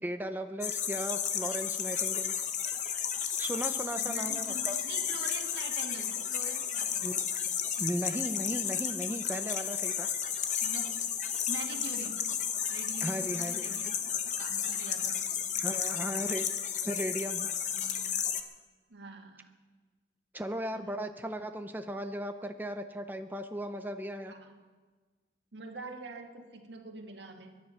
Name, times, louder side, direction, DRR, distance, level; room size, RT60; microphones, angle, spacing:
voice 1, 0.0-2.3 3.4-4.8 7.0-7.2 7.8-10.1 13.0-13.8 15.6-16.5 16.8-17.5 20.3-24.3, right 1 dB, 10° right, 7 dB, 0.6 m, -36 dB
sound 1, 0.6-18.4, left 8 dB, 40° left, 0.9 m, -33 dB
voice 2, 4.0-7.3 10.6-11.1 11.5-12.3 12.7-13.9 14.2-15.3 15.5-16.0 17.7-18.2 18.9-19.5 20.7-21.1 24.3-24.6 25.5-27.6, right 3 dB, 80° right, 3 dB, 1.8 m, -45 dB
23.0 x 10.5 x 5.7 m, 1.4 s
head